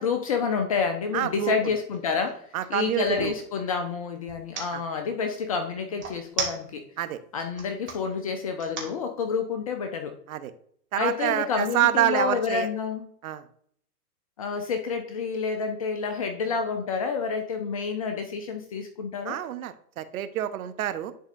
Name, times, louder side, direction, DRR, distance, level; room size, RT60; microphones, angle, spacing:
voice 1, 0.0-6.9 7.3-10.2 11.0-13.1 14.4-19.4, left 5 dB, 25° left, 6 dB, 0.3 m, -29 dB
voice 2, 1.1-1.5 2.5-3.3 4.7-4.8 7.0-7.2 10.3-10.5 10.9-12.7 13.2-13.4 19.3-21.1, right 12 dB, 60° right, 11 dB, 0.8 m, -27 dB
sound 1, 1.3-1.4 1.8-3.4 4.3-4.7 6.0-7.0 7.4-8.0 8.6-9.0, right 5 dB, 25° right, 1.8 m, -34 dB
10.5 x 4.2 x 2.5 m, 0.64 s
hypercardioid pair, 110°, 48 cm